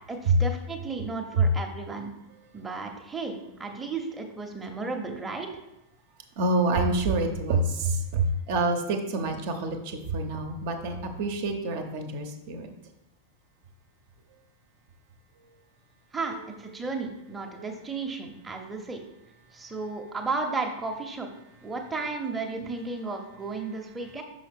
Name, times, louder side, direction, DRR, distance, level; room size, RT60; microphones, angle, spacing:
voice 1, 0.1-2.1 2.5-5.5 16.1-16.3 16.6-19.0 19.5-21.3 21.6-24.2, right 3 dB, 10° right, 2 dB, 0.9 m, -34 dB
voice 2, 6.4-12.7 17.6-17.7 19.9-20.0 22.6-22.7, right 3 dB, 50° right, 5 dB, 0.9 m, -27 dB
6.2 x 5.5 x 3.6 m, 0.88 s
figure-of-eight pair, 90°, 0 cm